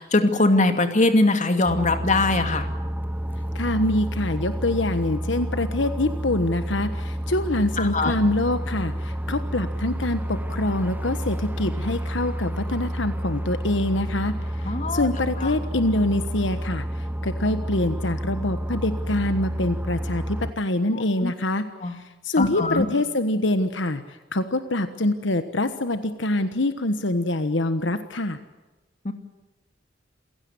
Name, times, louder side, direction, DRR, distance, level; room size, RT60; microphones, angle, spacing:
voice 1, 0.0-2.7 7.8-8.1 14.6-15.1 15.4-15.5 20.9-21.3 21.8-21.9 22.4-22.9 29.0-29.1, left 2 dB, 40° left, 7 dB, 2.4 m, -21 dB
sound 1, 1.7-20.5, equal, 10° right, 0.8 m, -30 dB
voice 2, 3.5-14.4 14.6-22.0 22.2-24.0 24.3-28.4, left 1 dB, 75° left, 10 dB, 1.4 m, -25 dB
28.0 x 17.0 x 9.6 m, 1.1 s
head